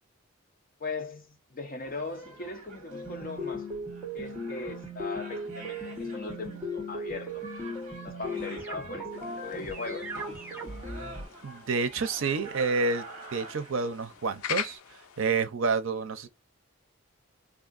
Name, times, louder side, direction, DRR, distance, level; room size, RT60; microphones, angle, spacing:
voice 1, 0.8-3.7 4.1-7.4 8.0-10.1, left 3 dB, 40° left, 0.7 m, -39 dB
sound 1, 1.8-14.8, right 2 dB, 35° right, 1.1 m, -48 dB
sound 2, 2.9-11.2, left 1 dB, 5° right, 1.1 m, -37 dB
sound 3, 9.1-15.4, left 8 dB, 85° left, 0.4 m, -42 dB
voice 2, 11.4-13.1 13.3-16.3, right 4 dB, 65° right, 0.5 m, -29 dB
3.7 x 2.7 x 2.5 m
head